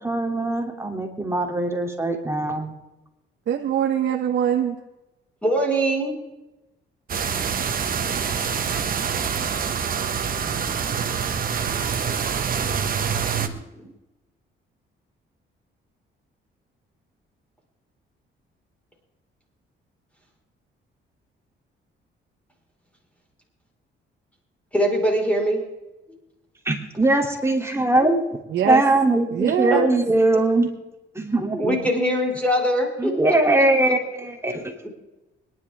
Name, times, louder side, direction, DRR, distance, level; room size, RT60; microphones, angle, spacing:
voice 1, 0.0-2.7 13.4-13.9 26.6-28.2 28.6-30.7 31.1-31.8 33.0-34.7, right 2 dB, 15° right, 2 dB, 2.8 m, -21 dB
voice 2, 3.5-4.8 28.5-28.8 29.3-29.9, right 9 dB, 65° right, 3 dB, 1.1 m, -22 dB
voice 3, 5.4-6.1 24.7-25.6 26.1-26.2 29.7-29.8 31.5-33.1 34.8-34.9, equal, 5° left, 0 dB, 4.6 m, -22 dB
sound 1, 7.1-13.5, right 7 dB, 45° right, 1.3 m, -25 dB
24.5 x 11.0 x 3.5 m, 1.0 s
cardioid pair, 90°, 20 cm